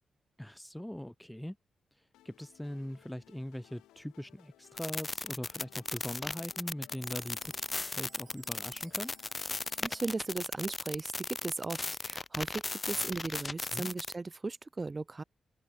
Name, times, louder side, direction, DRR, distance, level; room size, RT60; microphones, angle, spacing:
voice 1, 0.4-1.6 1.9-9.1 13.7-13.9, equal, 5° left, 2.8 m, -41 dB
sound 1, 2.1-10.1, left 14 dB, 90° left, 7.3 m, -61 dB
sound 2, 4.8-14.1, left 3 dB, 35° left, 1.4 m, -36 dB
Chime, 7.0-11.2, right 7 dB, 65° right, 2.6 m, -62 dB
voice 2, 9.8-15.2, right 3 dB, 35° right, 0.3 m, -37 dB
supercardioid pair, 50°, 0 cm